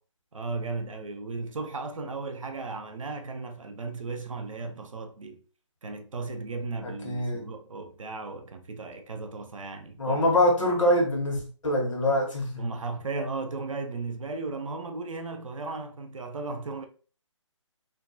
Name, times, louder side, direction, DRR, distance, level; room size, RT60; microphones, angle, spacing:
voice 1, 0.3-5.4 5.8-10.3 10.6-10.7 12.6-16.9, right 3 dB, 85° right, 0.6 m, -36 dB
voice 2, 6.8-7.5 10.0-12.6, left 1 dB, 75° left, 1.1 m, -24 dB
2.5 x 2.2 x 2.5 m
figure-of-eight pair, 150°, 16 cm